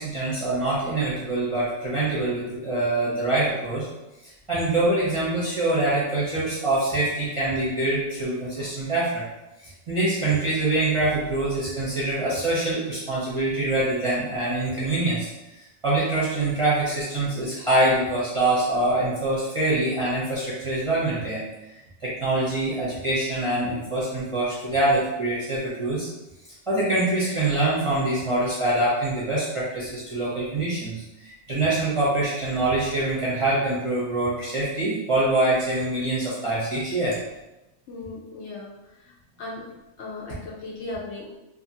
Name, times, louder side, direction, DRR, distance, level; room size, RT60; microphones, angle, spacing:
voice 1, 0.0-3.9 4.5-9.2 9.6-15.3 15.8-21.4 21.7-26.1 26.7-37.2, right 2 dB, 30° right, -9 dB, 0.6 m, -24 dB
voice 2, 37.9-38.7 39.0-39.1 39.4-39.6 40.0-41.4, left 2 dB, 65° left, -4 dB, 0.8 m, -36 dB
2.7 x 2.6 x 2.7 m, 0.97 s
omnidirectional pair, 1.4 m